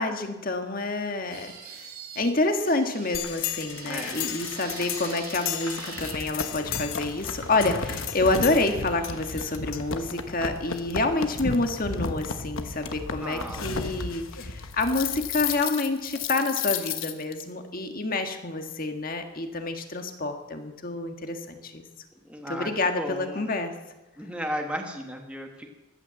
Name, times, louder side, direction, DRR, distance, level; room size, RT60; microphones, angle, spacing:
voice 1, 0.0-1.9 2.2-21.8 22.5-23.8, left 2 dB, 40° left, 6 dB, 1.7 m, -28 dB
sound 1, 1.3-2.3 2.6-6.3 7.0-9.6, right 6 dB, 85° right, 3.0 m, -45 dB
sound 2, 3.1-17.4, left 6 dB, 65° left, 1.2 m, -33 dB
voice 2, 3.8-4.3 13.2-13.8 22.3-22.7 23.0-23.5 24.2-25.7, equal, 5° right, 2 dB, 1.4 m, -35 dB
15.0 x 11.5 x 7.5 m, 1.1 s
head